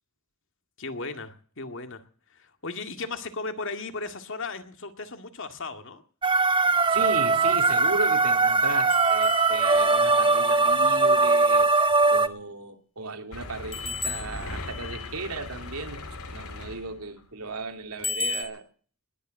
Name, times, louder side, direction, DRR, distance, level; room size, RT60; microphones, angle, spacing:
voice 1, 0.8-2.0 2.3-6.0, left 3 dB, 60° left, 7 dB, 2.1 m, -36 dB
sound 1, 6.2-12.3, right 3 dB, 25° right, 1.1 m, -21 dB
voice 2, 6.6-11.7 12.1-18.7, right 3 dB, 85° right, 5 dB, 2.8 m, -35 dB
sound 2, 8.9-10.8 13.7-15.1 18.0-18.5, left 4 dB, 25° left, 3.6 m, -34 dB
sound 3, 13.3-17.2 18.0-18.1 18.5-18.6, left 2 dB, 85° left, 2.7 m, -39 dB
20.5 x 9.0 x 7.7 m, 0.44 s
head